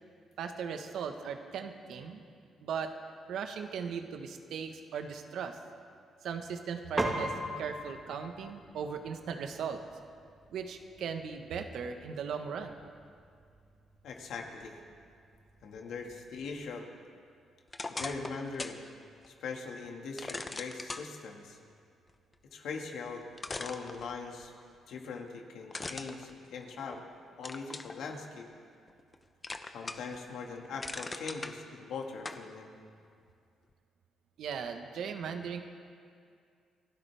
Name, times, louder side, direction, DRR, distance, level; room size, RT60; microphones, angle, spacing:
voice 1, 0.4-2.2 2.6-2.9 3.3-5.6 6.2-9.8 10.5-12.9 34.4-35.6, right 6 dB, 75° right, 6 dB, 1.3 m, -38 dB
Piano, 7.0-16.6, right 1 dB, 20° right, 2.1 m, -42 dB
voice 2, 14.0-14.7 15.6-16.8 17.9-18.8 19.3-21.6 22.5-23.2 23.6-24.5 24.9-27.0 27.4-28.5 29.7-32.7, left 4 dB, 75° left, 2 dB, 2.0 m, -41 dB
sound 1, 17.7-18.8 19.2-19.3 20.2-21.1 22.8-22.9 23.4-24.5 25.7-27.0 27.4-28.0 28.5-29.1 29.4-30.2 30.5-31.5 32.2-32.4, left 3 dB, 25° left, 0.9 m, -40 dB
29.0 x 12.0 x 3.5 m, 2.3 s
cardioid pair, 90°, 0 cm